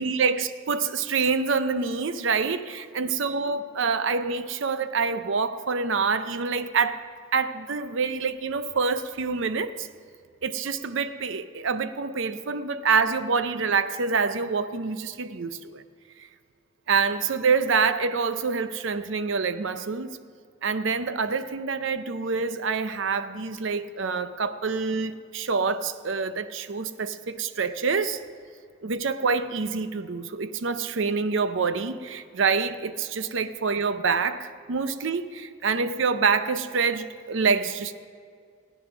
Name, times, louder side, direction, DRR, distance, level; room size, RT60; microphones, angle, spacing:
voice 1, 0.0-7.0 7.3-9.9 10.4-15.8 16.9-20.1 20.6-28.2 28.8-37.9, right 5 dB, 65° right, 0.6 m, -26 dB
16.0 x 9.2 x 6.0 m
head